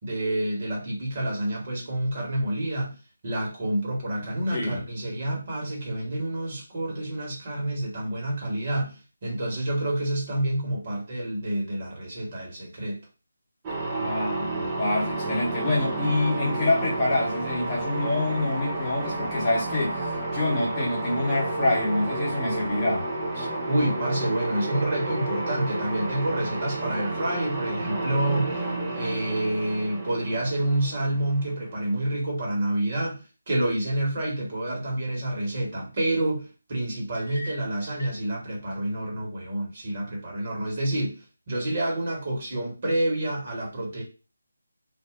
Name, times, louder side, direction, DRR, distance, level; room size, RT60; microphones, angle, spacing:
voice 1, 0.0-3.0 3.2-13.0 23.4-28.6 28.9-44.0, right 1 dB, 35° right, -2 dB, 1.5 m, -28 dB
sound 1, 13.6-32.0, right 2 dB, 20° right, 0.7 m, -31 dB
voice 2, 13.9-23.1, left 2 dB, 20° left, -6 dB, 1.2 m, -26 dB
sound 2, 37.1-38.2, left 1 dB, 65° right, 1.1 m, -43 dB
2.6 x 2.4 x 3.8 m, 0.32 s
figure-of-eight pair, 155°, 0 cm